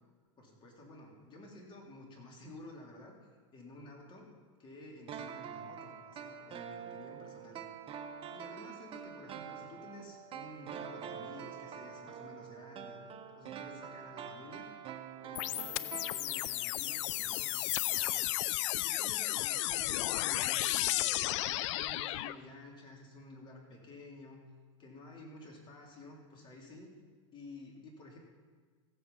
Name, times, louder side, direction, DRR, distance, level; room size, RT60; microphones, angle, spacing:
voice 1, 0.4-3.1 3.5-4.3 4.6-8.0 8.3-13.0 13.3-14.7 15.2-18.4 18.8-21.1 21.5-24.4 24.8-26.9 27.3-28.2, left 2 dB, 30° left, -1 dB, 3.4 m, -52 dB
sound 1, 5.1-16.7 17.0-17.1, right 8 dB, 35° right, 0.9 m, -46 dB
sound 2, 15.3-22.3, left 16 dB, 65° left, 0.5 m, -33 dB
14.5 x 8.7 x 5.5 m, 1.5 s
hypercardioid pair, 115°, 16 cm